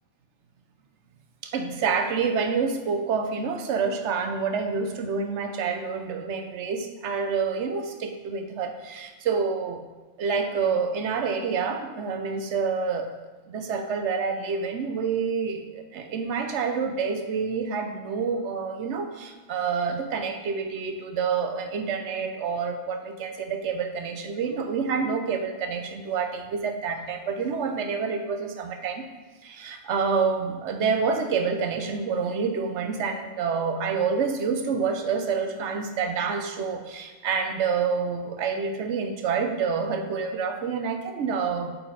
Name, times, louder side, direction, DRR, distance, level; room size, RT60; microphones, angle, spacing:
voice 1, 1.4-9.8 10.2-13.1 13.5-29.1 29.4-41.7, right 5 dB, 80° right, 6 dB, 1.0 m, -28 dB
8.4 x 4.1 x 3.9 m, 1.3 s
omnidirectional pair, 1.2 m